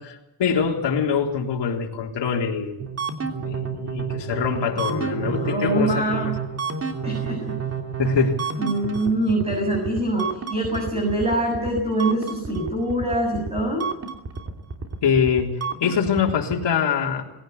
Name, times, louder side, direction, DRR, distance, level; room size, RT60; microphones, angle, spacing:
voice 1, 0.0-2.8 3.4-6.2 8.0-8.4 15.0-17.2, left 6 dB, 65° left, 1 dB, 3.8 m, -24 dB
sound 1, 2.8-16.6, right 6 dB, 30° right, 3.0 m, -30 dB
voice 2, 4.8-6.4 7.0-7.6 8.6-13.9, right 1 dB, 15° right, 0 dB, 7.3 m, -24 dB
20.5 x 17.0 x 8.3 m, 0.96 s
cardioid pair, 125°, 46 cm